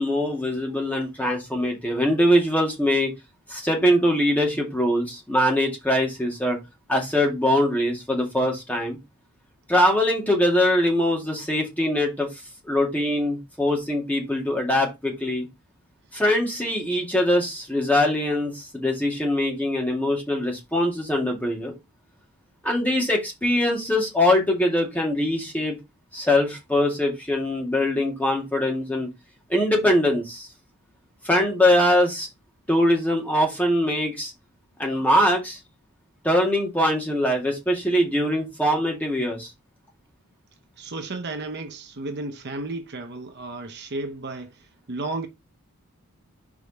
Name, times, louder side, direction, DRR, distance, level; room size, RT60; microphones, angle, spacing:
voice 1, 0.0-3.1 3.5-6.6 6.9-9.0 9.7-12.3 12.6-15.5 16.1-21.8 22.6-25.8 26.1-29.1 29.5-30.5 31.2-32.3 32.7-34.3 34.8-35.6 36.2-39.5, left 1 dB, 5° left, 2.0 m, -22 dB
voice 2, 40.8-45.3, right 2 dB, 50° right, 0.7 m, -33 dB
5.0 x 4.8 x 4.0 m
head